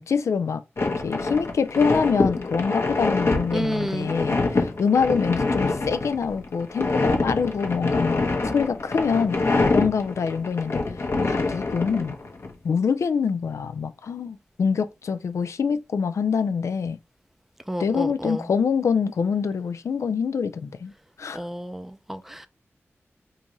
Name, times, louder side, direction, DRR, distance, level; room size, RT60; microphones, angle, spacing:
voice 1, 0.0-9.4 9.7-10.8 11.2-12.2 12.6-17.0 17.8-20.9 21.2-21.4, left 6 dB, 80° left, 0.3 m, -25 dB
sound 1, 0.8-12.5, left 3 dB, 55° left, 0.9 m, -25 dB
voice 2, 3.5-4.1 17.7-18.5 21.3-22.5, equal, 5° right, 0.5 m, -30 dB
3.7 x 2.6 x 3.0 m
cardioid pair, 60°, 5 cm